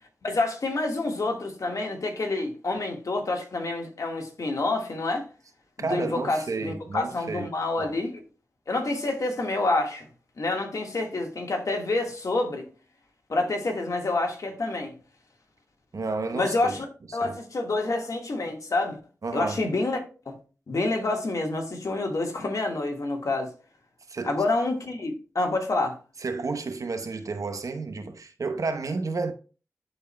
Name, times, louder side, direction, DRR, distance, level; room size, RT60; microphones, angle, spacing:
voice 1, 0.2-5.3 5.8-8.2 8.7-10.1 10.4-12.7 13.3-14.9 16.3-16.8 17.1-19.0 19.3-20.0 20.2-20.3 20.7-23.5 24.2-25.9, left 2 dB, 70° left, 1.6 m, -28 dB
voice 2, 5.8-7.5 7.8-7.9 15.9-16.7 17.2-17.4 19.2-19.6 24.1-24.4 26.2-29.3, right 3 dB, 70° right, 0.9 m, -31 dB
11.5 x 4.4 x 2.2 m
cardioid pair, 45°, 6 cm